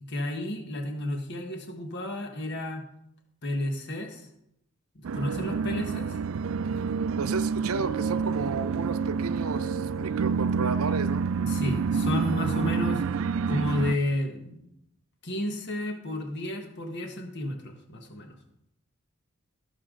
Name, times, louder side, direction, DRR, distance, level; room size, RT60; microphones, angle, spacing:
voice 1, 0.1-2.8 3.4-4.3 5.1-6.2 11.5-13.0 13.4-14.7 15.2-18.4, left 1 dB, 55° left, 3 dB, 1.5 m, -31 dB
sound 1, 5.0-14.0, right 5 dB, 65° right, 0.4 m, -28 dB
voice 2, 7.2-11.3, right 4 dB, 85° right, 12 dB, 0.7 m, -32 dB
17.0 x 7.3 x 3.9 m, 0.79 s
head